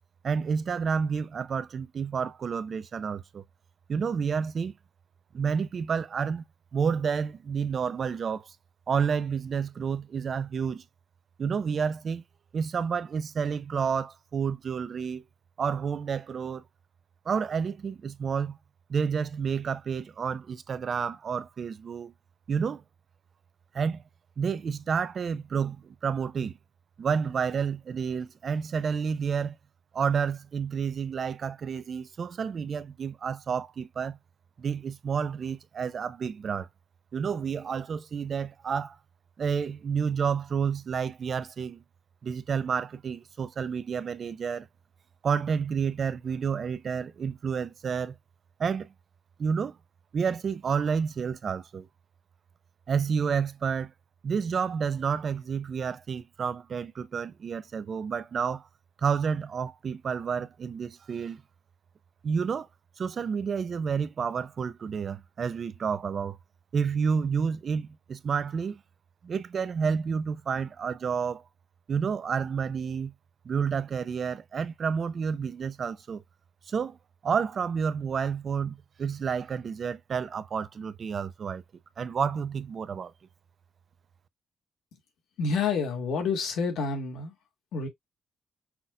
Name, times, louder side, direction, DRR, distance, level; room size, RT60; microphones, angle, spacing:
voice 1, 0.2-3.4 3.9-4.7 5.3-6.4 6.7-8.5 8.9-10.8 11.4-12.2 12.5-15.2 15.6-16.6 17.3-18.6 18.9-22.1 22.5-22.8 23.7-24.0 24.4-26.6 27.0-29.6 29.9-34.2 34.6-36.7 37.1-39.0 39.4-41.8 42.2-44.7 45.2-48.2 48.6-48.9 49.4-49.8 50.1-51.9 52.9-53.9 54.2-58.7 59.0-61.4 62.2-62.7 63.0-66.4 66.7-68.8 69.2-71.4 71.9-73.1 73.4-76.2 76.7-77.0 77.2-81.6 82.0-83.1, right 6 dB, 40° right, 0.5 m, -30 dB
voice 2, 85.4-87.3 87.7-87.9, left 5 dB, 90° left, 1.9 m, -28 dB
5.8 x 3.8 x 2.2 m
cardioid pair, 165°, 0 cm